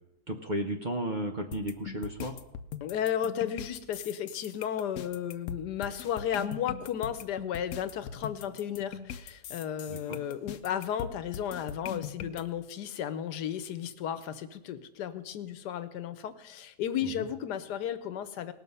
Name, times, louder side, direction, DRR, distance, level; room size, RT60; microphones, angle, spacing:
voice 1, 0.3-2.3 9.9-10.2 17.0-17.3, right 1 dB, 35° right, 4 dB, 0.8 m, -34 dB
sound 1, 1.5-12.4, left 7 dB, 70° left, 1.1 m, -41 dB
voice 2, 2.8-18.5, left 9 dB, 85° left, 12 dB, 1.4 m, -34 dB
19.0 x 6.5 x 5.5 m, 0.91 s
omnidirectional pair, 1.7 m